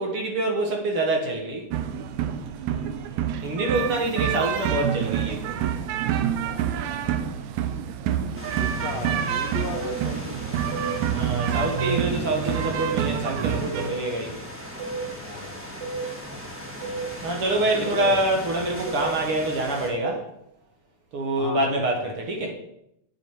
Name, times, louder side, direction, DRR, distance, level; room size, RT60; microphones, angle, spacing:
voice 1, 0.0-1.6 3.4-5.6 11.1-14.3 17.2-20.2 21.1-22.5, right 1 dB, 55° right, 1 dB, 2.0 m, -26 dB
sound 1, 1.7-13.9, right 9 dB, 85° right, 2.0 m, -27 dB
voice 2, 2.6-3.1 6.4-7.6 8.6-10.6 11.9-12.4 15.1-15.7 17.7-18.2 21.4-22.1, left 6 dB, 70° left, 3 dB, 2.1 m, -38 dB
sound 2, 8.3-19.9, equal, 10° right, 0.8 m, -38 dB
sound 3, 9.7-9.9 10.7-10.9 11.7-11.9 12.7-12.9 13.7-14.0 14.8-15.0 15.8-16.0 16.8-17.0 17.8-18.1 18.9-19.1 19.9-20.1, right 3 dB, 40° right, 4.6 m, -32 dB
9.3 x 7.9 x 4.6 m, 0.79 s
omnidirectional pair, 3.3 m